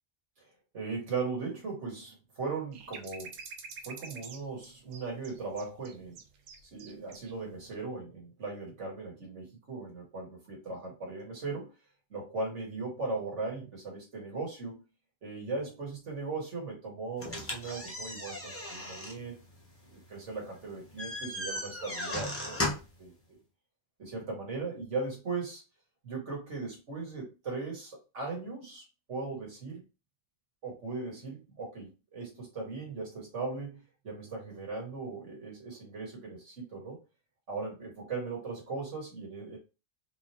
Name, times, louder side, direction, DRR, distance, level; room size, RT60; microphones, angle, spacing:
voice 1, 0.7-3.4 3.8-6.2 6.7-11.7 12.1-14.8 15.2-19.4 19.9-23.4 24.0-25.6 26.0-29.8 30.6-37.0 37.5-39.6, right 3 dB, 65° right, -1 dB, 2.2 m, -38 dB
sound 1, 2.7-7.3 7.6-7.7, right 5 dB, 80° right, 1.1 m, -47 dB
sound 2, 17.2-23.0, left 1 dB, 10° left, 0.8 m, -37 dB
4.2 x 3.5 x 3.0 m, 0.29 s
omnidirectional pair, 1.3 m